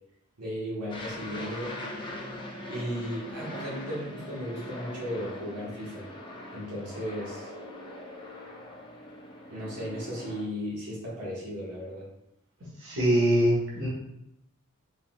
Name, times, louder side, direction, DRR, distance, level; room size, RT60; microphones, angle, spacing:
voice 1, 0.4-1.8 2.7-6.1 6.5-7.5 9.5-12.1, equal, 85° right, -7 dB, 1.4 m, -35 dB
Aircraft, 0.9-10.4, left 1 dB, 20° left, 0.7 m, -41 dB
voice 2, 12.8-13.9, right 1 dB, 60° right, -6 dB, 1.3 m, -23 dB
4.1 x 3.9 x 2.3 m, 0.82 s
head